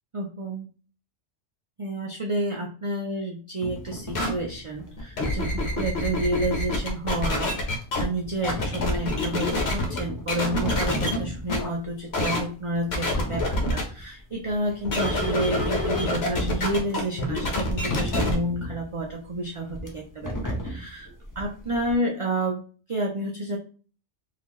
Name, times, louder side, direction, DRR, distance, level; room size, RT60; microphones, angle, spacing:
voice 1, 0.1-0.7 1.8-21.1 21.4-23.6, right 1 dB, 55° right, 0 dB, 0.3 m, -30 dB
sound 1, 3.6-21.9, equal, 20° left, 0.6 m, -36 dB
sound 2, 4.1-4.3 5.0-8.0 8.4-10.0 10.3-11.2 11.5-11.6 12.1-12.4 12.9-13.8 14.8-18.3, left 2 dB, 60° left, 1.2 m, -26 dB
3.9 x 2.7 x 3.0 m, 0.39 s
omnidirectional pair, 1.2 m